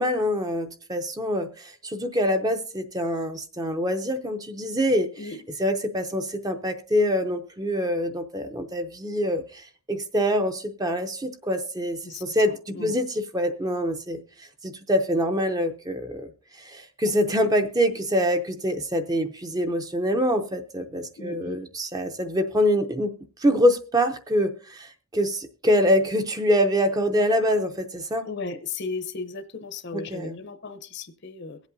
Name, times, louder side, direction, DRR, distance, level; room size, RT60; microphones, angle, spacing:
voice 1, 0.0-5.1 5.6-16.3 16.6-28.3 29.9-30.4, equal, 15° right, 0.6 m, -25 dB
voice 2, 12.0-12.9 21.2-21.6 28.2-31.7, left 4 dB, 50° left, 0.7 m, -36 dB
22.5 x 8.1 x 2.6 m
head